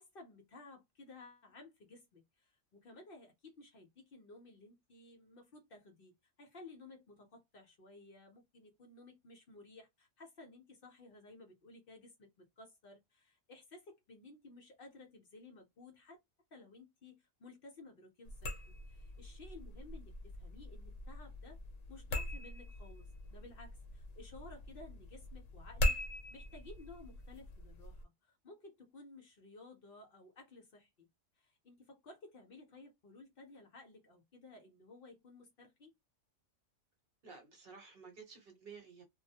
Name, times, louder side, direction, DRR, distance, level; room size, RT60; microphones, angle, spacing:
voice 1, 0.0-16.2 16.5-21.6 21.9-26.0 26.3-31.1 31.4-35.9, left 2 dB, 55° left, 0.8 m, -56 dB
sound 1, 18.3-28.0, left 1 dB, 85° left, 1.0 m, -41 dB
voice 2, 37.2-39.0, right 5 dB, 50° right, 0.9 m, -53 dB
2.2 x 2.0 x 2.7 m
omnidirectional pair, 1.3 m